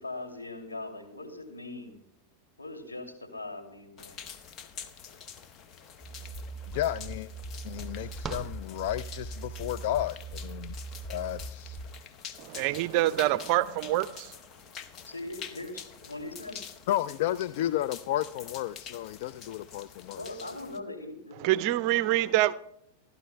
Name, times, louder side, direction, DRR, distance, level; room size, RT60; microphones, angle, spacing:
voice 1, 0.0-2.0 2.6-4.2 15.1-16.6 20.1-21.6, left 2 dB, 75° left, 2.6 m, -40 dB
sound 1, 4.0-20.8, left 7 dB, 35° left, 0.8 m, -47 dB
sound 2, 6.0-11.8, right 3 dB, 15° left, 4.0 m, -41 dB
sound 3, 6.1-6.2 6.4-9.5, right 4 dB, 15° right, 0.8 m, -45 dB
voice 2, 6.7-7.3 7.6-10.7 11.1-11.8 16.9-20.5, left 13 dB, 50° left, 0.4 m, -32 dB
voice 3, 12.4-14.3 21.4-22.5, right 15 dB, 45° right, 0.4 m, -26 dB
27.5 x 12.0 x 2.2 m
figure-of-eight pair, 90°, 0 cm